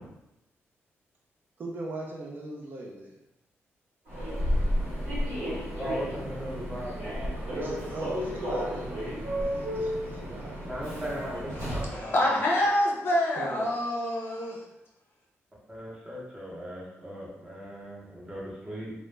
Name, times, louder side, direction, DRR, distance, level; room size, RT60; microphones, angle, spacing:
voice 1, 1.6-3.2 7.5-10.6 13.4-13.7, right 2 dB, 45° right, 0.4 m, -40 dB
Human voice / Subway metro underground, 4.1-12.0, equal, 70° right, 1.1 m, -32 dB
voice 2, 5.7-7.1 10.7-12.1 15.7-18.9, equal, 15° right, 0.7 m, -38 dB
voice 3, 11.5-14.6, left 1 dB, 50° left, 0.6 m, -27 dB
2.2 x 2.0 x 3.1 m
wide cardioid pair, 150°, 5 cm